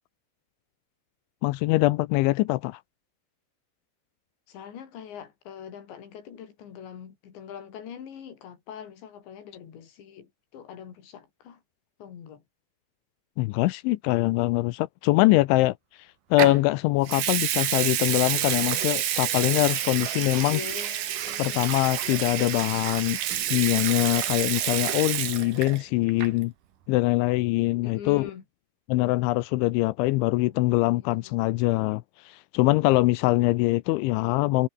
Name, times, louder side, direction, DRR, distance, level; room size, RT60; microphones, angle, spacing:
voice 1, 1.4-2.8 13.4-15.7 16.3-20.6 21.4-23.2 23.5-26.5 26.9-28.3 28.9-32.0 32.5-34.7, left 20 dB, 85° left, 2.9 m, -23 dB
voice 2, 4.5-11.6 12.0-12.4 17.0-17.3 20.3-21.7 27.8-28.4 28.9-29.2 30.3-31.5, left 8 dB, 65° left, 5.8 m, -43 dB
Water tap faucet / Sink (filling or washing) / Liquid, 16.4-16.6 17.1-25.8 26.1-26.4, right 11 dB, 60° right, 2.5 m, -28 dB
omnidirectional pair, 5.7 m